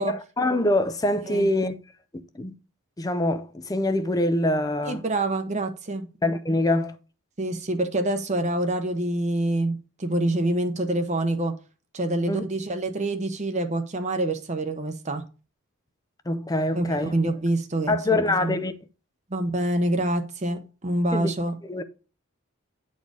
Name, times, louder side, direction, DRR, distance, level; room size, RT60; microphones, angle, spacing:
voice 1, 0.0-1.7 2.1-2.5 3.0-5.0 6.2-7.0 12.3-12.4 16.3-17.2 17.9-18.7 21.1-21.3 21.6-21.8, left 1 dB, 15° left, 0.5 m, -24 dB
voice 2, 4.8-6.1 7.4-11.6 11.9-15.2 16.7-18.6 19.3-21.5, right 1 dB, 30° right, 0.8 m, -26 dB
9.5 x 4.3 x 4.7 m
head